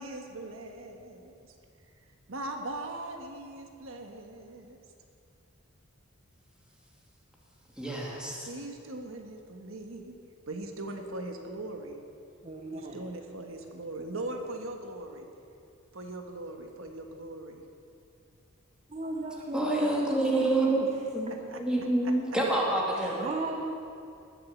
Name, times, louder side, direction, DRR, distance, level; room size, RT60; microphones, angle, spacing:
voice 1, 0.0-1.5 2.3-4.8 8.5-10.1 10.5-12.0 12.7-15.3 15.9-17.6 21.3-21.6 22.0-22.1, right 2 dB, 70° right, 4 dB, 1.3 m, -40 dB
voice 2, 7.8-8.5 19.5-23.3, right 2 dB, 5° right, -4 dB, 2.4 m, -28 dB
voice 3, 12.4-13.1 18.9-21.0 22.9-23.7, right 2 dB, 30° right, 2 dB, 0.9 m, -37 dB
19.5 x 7.6 x 7.3 m, 2.6 s
head